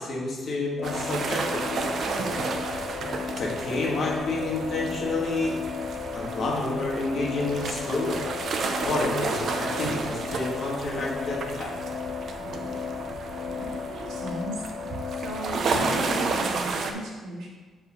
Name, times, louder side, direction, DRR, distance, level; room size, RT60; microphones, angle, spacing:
voice 1, 0.0-1.8 3.4-5.6 6.1-8.2 8.8-11.7, left 2 dB, 50° left, -2 dB, 1.8 m, -29 dB
sound 1, 0.8-16.5, left 7 dB, 75° left, 0.3 m, -35 dB
sound 2, 0.8-16.9, right 4 dB, 55° right, 0.7 m, -32 dB
voice 2, 13.6-14.6 15.1-17.5, right 1 dB, 85° right, -4 dB, 1.9 m, -37 dB
4.9 x 4.9 x 6.1 m, 1.4 s
cardioid pair, 120°, 0 cm